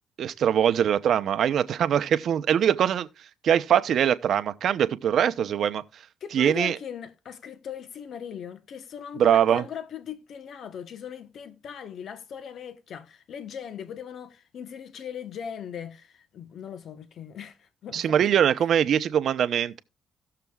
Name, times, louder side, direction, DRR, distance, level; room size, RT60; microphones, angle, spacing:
voice 1, 0.2-3.1 3.4-5.8 6.3-6.8 9.2-9.6 17.9-19.8, right 9 dB, 65° right, 0.7 m, -22 dB
voice 2, 6.2-18.2, left 8 dB, 65° left, 1.0 m, -39 dB
17.0 x 6.7 x 2.3 m
cardioid pair, 90°, 0 cm